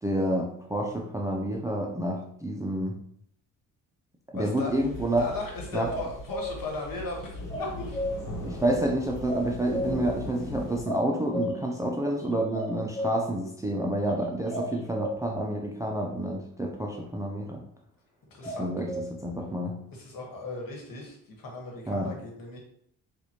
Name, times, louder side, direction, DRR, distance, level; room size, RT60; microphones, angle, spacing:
voice 1, 0.0-3.0 4.3-5.3 5.7-5.9 8.5-17.6 18.4-18.9 19.2-19.8 21.9-22.1, right 1 dB, 10° right, 0 dB, 0.5 m, -29 dB
voice 2, 4.3-4.7 5.2-8.0 18.3-18.8 19.9-22.6, left 3 dB, 55° left, 0 dB, 1.5 m, -37 dB
sound 1, 4.7-10.8, left 1 dB, 80° left, 1.2 m, -39 dB
sound 2, 5.9-6.6 7.5-8.1 9.3-10.0 10.9-11.6 12.5-13.2 14.5-15.1 18.4-19.1, left 1 dB, 15° left, 1.1 m, -32 dB
4.1 x 2.5 x 2.9 m, 0.68 s
supercardioid pair, 60°, 41 cm